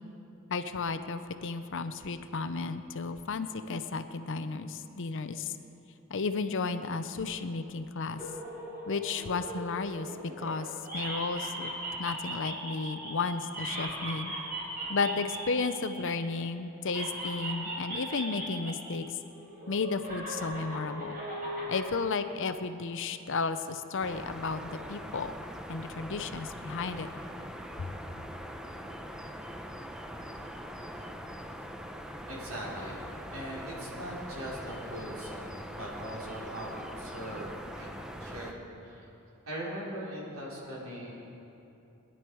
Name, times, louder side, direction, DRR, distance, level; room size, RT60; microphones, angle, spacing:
voice 1, 0.5-5.5 6.1-8.2 8.9-10.1 10.4-11.7 12.0-14.3 14.9-19.1 19.7-21.2 21.7-25.3 25.7-27.1 27.8-27.9, left 4 dB, 60° left, 10 dB, 0.7 m, -33 dB
sound 1, 8.2-10.6 10.8-16.4 16.8-18.9 19.2-21.8, right 1 dB, 40° right, 4.3 m, -38 dB
sound 2, 24.0-38.5, equal, 5° right, 0.6 m, -42 dB
voice 2, 32.3-39.1 39.4-41.2, right 1 dB, 70° right, -5 dB, 4.3 m, -40 dB
22.0 x 11.0 x 4.7 m, 2.9 s
head